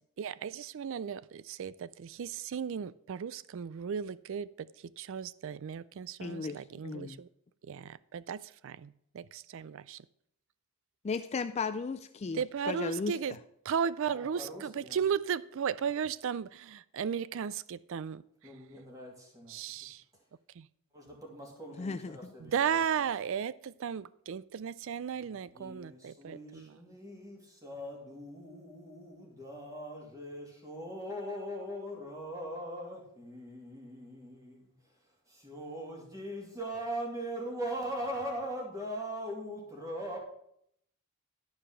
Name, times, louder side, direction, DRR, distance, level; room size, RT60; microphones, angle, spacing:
voice 1, 0.2-7.3 7.6-10.1 12.3-13.4 13.6-18.2 19.5-20.0 20.6-20.7 22.4-26.8, right 7 dB, 60° right, 0.4 m, -35 dB
voice 2, 6.2-7.2 11.0-12.4 12.7-13.2 21.8-22.3, left 4 dB, 30° left, 0.3 m, -35 dB
voice 3, 14.1-15.0 18.4-19.6 20.9-22.8 25.2-34.7 35.3-40.2, equal, 15° right, 2.7 m, -41 dB
12.0 x 5.1 x 5.7 m
head